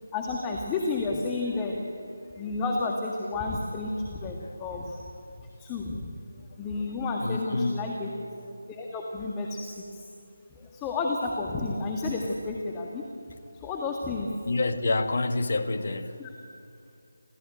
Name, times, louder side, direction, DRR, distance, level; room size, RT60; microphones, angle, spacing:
voice 1, 0.1-2.1 2.3-5.0 5.4-6.1 6.6-8.3 8.6-10.1 10.5-13.0 13.5-14.4 16.2-16.3, left 3 dB, 15° left, 1.8 m, -31 dB
voice 2, 7.2-7.9 10.6-10.7 14.5-16.2, left 3 dB, 55° left, 1.6 m, -28 dB
27.0 x 16.0 x 9.1 m
figure-of-eight pair, 160°, 0 cm